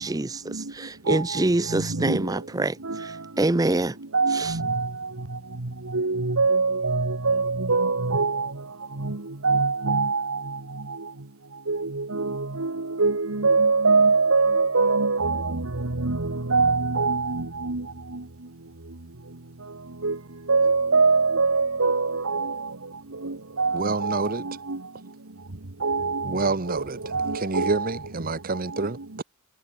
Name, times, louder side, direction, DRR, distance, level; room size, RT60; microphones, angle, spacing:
voice 1, 0.0-4.0 4.3-4.6, right 2 dB, 15° right, 0.6 m, -26 dB
voice 2, 1.7-2.2 4.1-4.9 5.9-8.5 9.0-9.2 9.4-10.4 11.7-15.7 16.0-17.8 20.0-20.2 20.5-22.5 23.2-24.2 24.7-24.8 25.8-26.3 27.1-27.9, right 4 dB, 85° right, 1.6 m, -23 dB
voice 3, 23.7-24.5 26.2-29.2, right 3 dB, 45° right, 1.0 m, -28 dB
head